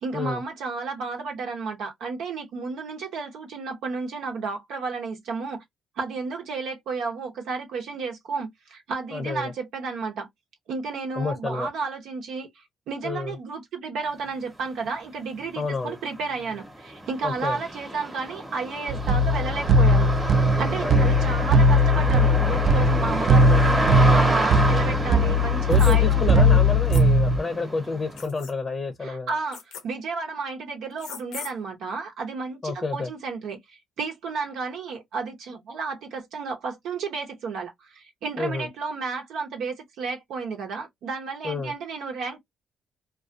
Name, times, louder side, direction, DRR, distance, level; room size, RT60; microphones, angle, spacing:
voice 1, 0.0-5.6 6.0-10.3 10.7-20.2 20.6-26.6 29.0-42.4, right 4 dB, 80° right, 0.9 m, -32 dB
voice 2, 9.1-9.5 11.2-11.7 13.0-13.4 15.6-15.9 17.2-17.6 20.8-21.2 25.7-29.3 32.6-33.1 38.4-38.7 41.4-41.7, left 3 dB, 25° left, 0.6 m, -29 dB
sound 1, 14.8-14.9 15.4-28.3, right 1 dB, 15° right, 1.0 m, -29 dB
sound 2, 18.9-27.4, left 1 dB, 65° right, 0.3 m, -19 dB
sound 3, 25.7-26.0 26.9-27.0 28.2-28.5 29.5-29.8 31.0-31.5, left 7 dB, 85° left, 0.6 m, -38 dB
2.4 x 2.3 x 2.4 m
cardioid pair, 90°, 0 cm